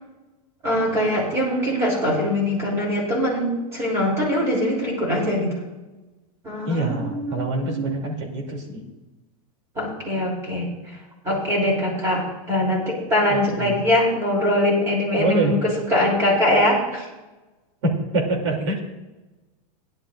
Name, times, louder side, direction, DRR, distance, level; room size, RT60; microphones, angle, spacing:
voice 1, 0.6-5.6 6.4-8.0 9.7-11.0 11.2-17.1, left 1 dB, 15° right, -3 dB, 3.2 m, -22 dB
voice 2, 6.7-8.9 13.3-13.7 15.2-15.5 17.8-18.8, right 2 dB, 50° right, 1 dB, 2.8 m, -25 dB
16.5 x 11.0 x 2.5 m, 1.1 s
supercardioid pair, 175°, 19 cm